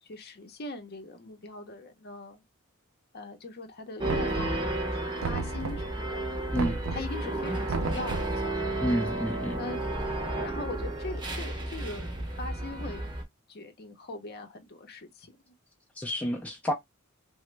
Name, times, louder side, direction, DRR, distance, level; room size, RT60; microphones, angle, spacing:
voice 1, 0.0-2.4 3.1-5.0 5.2-6.2 6.9-8.7 9.6-9.8 10.3-12.1 12.4-13.0 13.5-15.4, left 2 dB, 50° left, 0.6 m, -41 dB
sound 1, 4.0-13.2, right 2 dB, 20° right, 0.7 m, -32 dB
Knock, 4.1-4.8 5.2-6.0 6.6-7.2 7.7-8.4, right 4 dB, 65° right, 0.5 m, -33 dB
voice 2, 8.8-9.6 16.0-16.7, equal, 5° left, 0.4 m, -29 dB
3.0 x 2.0 x 3.1 m
head